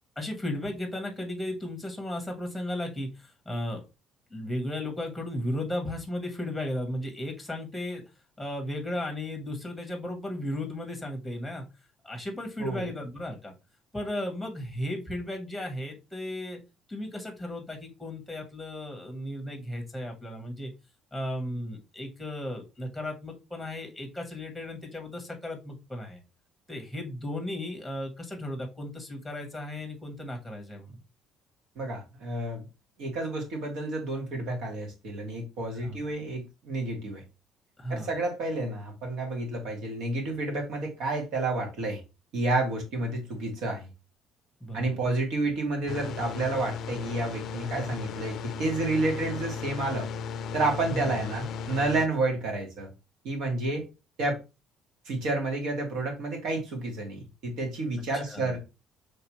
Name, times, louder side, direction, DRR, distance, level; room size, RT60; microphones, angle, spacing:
voice 1, 0.2-3.8 4.3-8.0 8.4-11.6 12.0-13.5 13.9-16.6 16.9-20.7 21.1-26.2 26.7-30.9 35.8-36.0 37.8-38.1 44.6-45.0 50.9-51.1 58.3-58.5, left 1 dB, ahead, 2 dB, 1.1 m, -35 dB
voice 2, 12.6-12.9 31.8-32.7 33.0-37.2 37.9-42.0 42.3-43.9 44.7-50.1 50.5-52.9 53.2-53.9 54.2-54.4 55.1-58.6, right 2 dB, 75° right, 2 dB, 1.9 m, -30 dB
sound 1, 45.9-52.1, left 6 dB, 55° left, 0.4 m, -36 dB
4.9 x 3.3 x 3.1 m, 0.27 s
cardioid pair, 145°, 0 cm